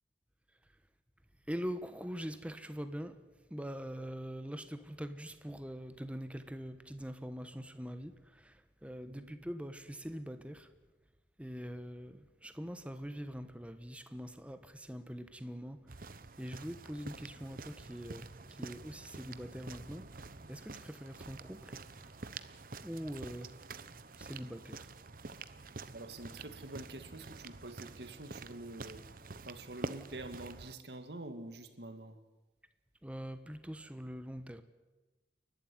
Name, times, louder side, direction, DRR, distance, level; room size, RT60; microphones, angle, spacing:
voice 1, 1.5-10.7 11.4-22.2 22.8-23.6 24.2-24.9 33.0-34.6, equal, 5° right, 1.2 m, -43 dB
sound 1, 15.9-30.7, right 3 dB, 50° right, 0.9 m, -48 dB
voice 2, 25.9-29.0 29.5-32.2, right 2 dB, 70° right, 2.1 m, -46 dB
29.0 x 12.0 x 9.6 m
head